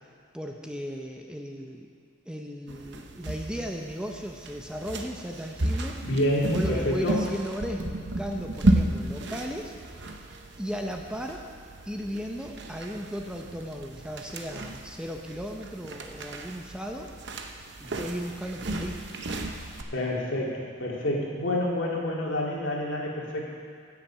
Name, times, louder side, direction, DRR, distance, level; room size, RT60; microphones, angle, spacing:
voice 1, 0.3-1.9 2.3-6.0 6.5-9.7 10.1-10.2 10.6-11.4 11.8-17.1 17.8-19.0, equal, 5° right, 1 dB, 0.6 m, -36 dB
sound 1, 2.7-19.8, right 1 dB, 60° right, 0.9 m, -33 dB
voice 2, 6.1-7.2 19.9-23.5, left 1 dB, 70° left, -3 dB, 2.2 m, -28 dB
15.5 x 7.0 x 5.6 m, 2.2 s
head